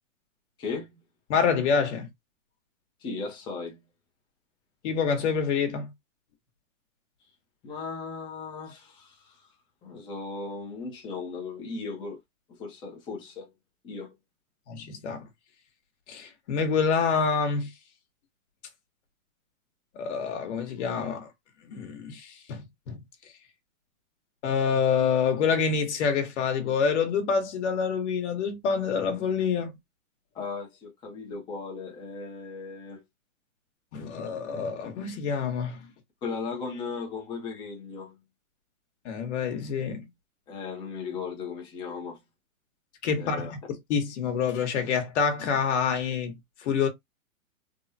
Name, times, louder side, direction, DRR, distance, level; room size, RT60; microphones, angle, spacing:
voice 1, 1.3-2.1 4.8-5.9 14.7-15.2 16.1-17.7 19.9-21.3 21.6-23.0 24.4-29.8 33.9-35.9 39.0-40.1 43.0-46.9, left 6 dB, 55° left, 1.2 m, -27 dB
voice 2, 3.0-3.8 7.6-9.5 9.8-12.2 12.5-13.5 13.8-14.1 30.3-33.0 36.2-38.2 40.5-42.2 43.2-43.5, left 4 dB, 10° left, 0.6 m, -37 dB
3.5 x 2.2 x 2.7 m
hypercardioid pair, 150°, 42 cm